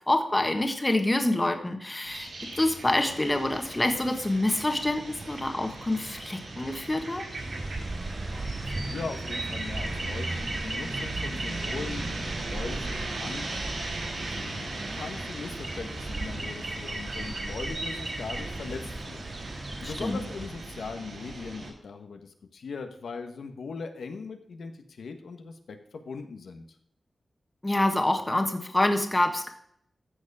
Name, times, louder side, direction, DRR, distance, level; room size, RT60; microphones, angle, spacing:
voice 1, 0.1-2.3 2.5-7.2 19.8-20.2 27.6-29.5, left 1 dB, 15° left, 5 dB, 1.5 m, -26 dB
sound 1, 2.1-21.7, right 2 dB, 80° right, 5.1 m, -38 dB
sound 2, 7.4-20.5, right 2 dB, 40° right, 2.8 m, -37 dB
voice 2, 8.6-13.5 14.2-19.3 19.8-26.6, left 4 dB, 85° left, 6 dB, 1.4 m, -40 dB
14.0 x 7.0 x 4.9 m, 0.68 s
wide cardioid pair, 130°, 0 cm